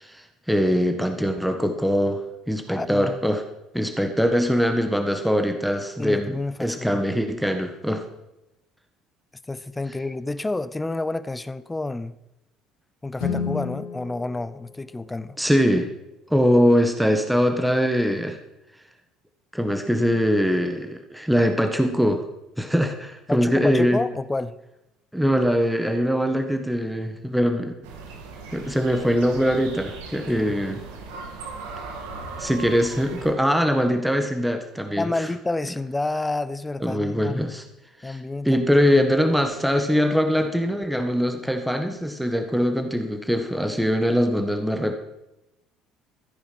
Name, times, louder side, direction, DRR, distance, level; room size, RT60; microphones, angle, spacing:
voice 1, 0.0-2.2 2.5-3.4 3.7-6.3 6.6-8.0 15.4-15.9 16.3-18.4 19.5-22.3 22.6-24.0 25.1-27.7 28.5-30.8 32.4-35.3 36.8-37.6 38.0-45.0, equal, 5° right, 6 dB, 1.6 m, -22 dB
voice 2, 2.7-3.2 6.0-7.0 9.5-12.2 13.0-15.4 23.3-24.6 34.9-37.4 38.0-38.7 39.0-39.1, left 2 dB, 15° left, 16 dB, 0.7 m, -29 dB
Guitar, 13.2-15.8, left 6 dB, 70° left, 2.6 m, -32 dB
sound 1, 27.8-33.3, right 4 dB, 70° right, 2.1 m, -38 dB
14.0 x 9.8 x 6.0 m, 0.91 s
figure-of-eight pair, 60°, 0 cm